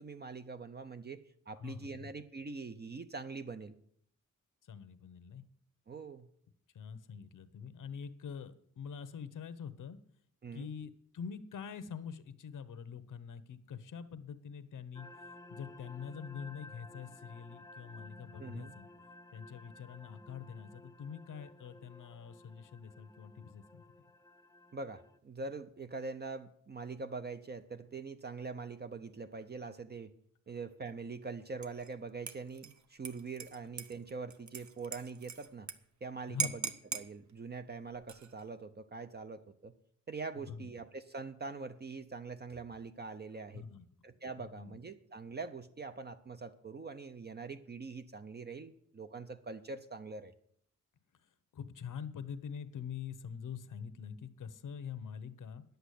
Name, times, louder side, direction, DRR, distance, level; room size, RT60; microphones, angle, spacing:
voice 1, 0.0-3.7 5.9-6.3 10.4-10.7 18.4-18.7 24.7-30.1 30.5-35.7 36.0-39.7 40.1-43.6 44.0-50.3, right 4 dB, 30° right, 9 dB, 0.6 m, -44 dB
voice 2, 1.6-2.1 4.6-5.4 6.7-10.0 10.5-15.1 15.5-18.9 19.3-23.8 36.3-36.5 40.3-40.7 43.5-43.8 44.4-44.8 51.2-55.6, left 7 dB, 75° left, 13 dB, 1.0 m, -45 dB
sound 1, 14.9-25.2, left 1 dB, 10° left, 0.6 m, -55 dB
Dishes pots and pans / Liquid, 31.6-31.9 32.3-35.7 36.0-36.1 36.4-37.1 37.9-38.4, right 7 dB, 65° right, 0.9 m, -40 dB
10.5 x 8.1 x 8.3 m, 0.66 s
wide cardioid pair, 135°, 31 cm